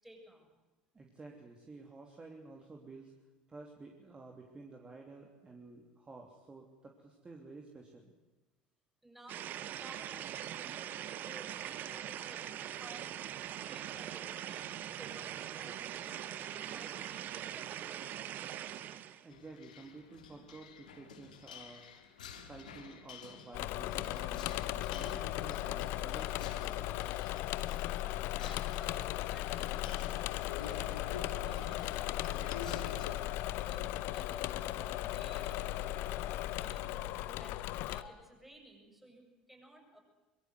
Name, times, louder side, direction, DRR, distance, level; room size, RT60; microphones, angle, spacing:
voice 1, 0.0-0.6 9.0-13.1 13.5-16.3 16.5-18.7 28.4-33.0 33.3-40.0, right 1 dB, 5° right, 2 dB, 7.5 m, -56 dB
voice 2, 0.9-3.1 3.5-8.1 19.2-27.0, right 3 dB, 20° right, 1 dB, 3.0 m, -52 dB
sound 1, 9.3-19.3, right 11 dB, 45° right, 1.2 m, -42 dB
sound 2, 19.3-33.1, left 6 dB, 75° left, 2.3 m, -50 dB
Engine / Mechanisms, 23.5-38.0, left 15 dB, 55° left, 0.9 m, -37 dB
24.5 x 22.0 x 8.0 m, 1.1 s
figure-of-eight pair, 65°, 4 cm